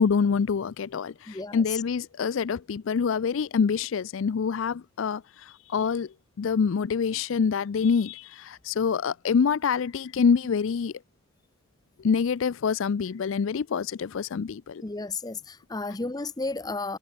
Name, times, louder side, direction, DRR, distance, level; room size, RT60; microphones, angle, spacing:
voice 1, 0.0-10.9 12.0-14.8, left 6 dB, 70° left, 0.4 m, -26 dB
voice 2, 1.3-1.8 14.8-17.0, left 3 dB, 20° left, 0.5 m, -33 dB
head